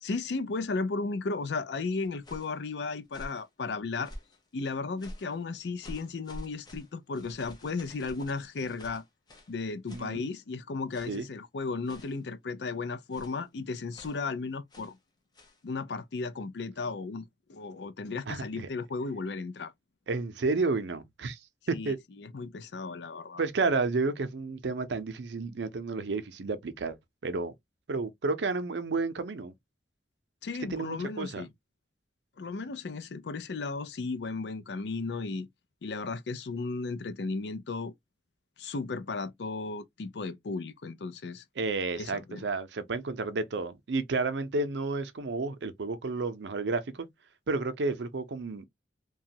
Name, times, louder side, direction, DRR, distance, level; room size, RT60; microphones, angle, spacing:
voice 1, 0.0-4.1 4.5-9.0 9.5-15.0 15.6-17.2 17.5-19.7 21.7-23.4 30.4-31.5 32.4-35.5 35.8-37.9 38.6-41.4 42.0-42.4, left 3 dB, 75° left, 0.5 m, -35 dB
sound 1, 2.0-2.6 3.0-3.5 4.0-4.4 5.0-5.4 5.8-9.6 9.9-10.1 10.9-11.3 11.8-12.3 13.1-13.4 13.9-14.2 14.7-15.0 15.3-15.6, equal, 25° left, 0.7 m, -48 dB
voice 2, 9.9-10.3 11.1-11.3 18.3-18.7 20.1-21.4 21.7-22.0 23.4-27.0 27.2-27.5 27.9-29.5 30.7-31.4 41.6-47.1 47.5-48.6, right 3 dB, 85° right, 0.6 m, -31 dB
2.9 x 2.3 x 2.7 m
head